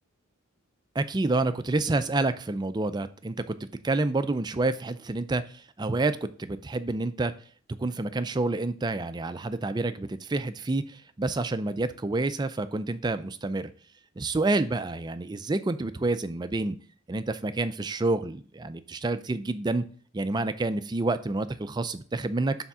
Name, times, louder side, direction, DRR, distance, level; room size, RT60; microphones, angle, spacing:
voice 1, 1.0-3.6 3.8-7.3 7.8-13.7 14.2-16.8 17.1-19.8 20.1-22.6, right 2 dB, 20° right, 11 dB, 0.4 m, -28 dB
7.1 x 3.6 x 5.5 m, 0.42 s
head